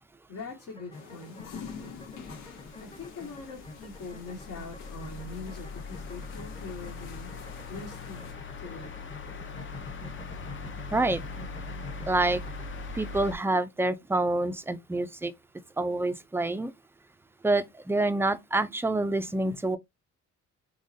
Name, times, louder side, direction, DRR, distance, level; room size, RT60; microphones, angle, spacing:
voice 1, 0.3-1.5 2.8-7.3 7.7-8.3 8.6-8.9, left 3 dB, 60° left, 1.2 m, -42 dB
sound 1, 0.7-12.7, left 2 dB, 15° left, 0.9 m, -47 dB
sound 2, 0.9-8.3, left 6 dB, 85° left, 0.9 m, -48 dB
sound 3, 1.4-13.3, left 4 dB, 40° left, 0.7 m, -41 dB
voice 2, 12.1-12.4 12.9-15.3 15.8-16.7 17.4-19.8, right 2 dB, 10° right, 0.4 m, -27 dB
3.7 x 3.0 x 2.6 m
cardioid pair, 90°, 30 cm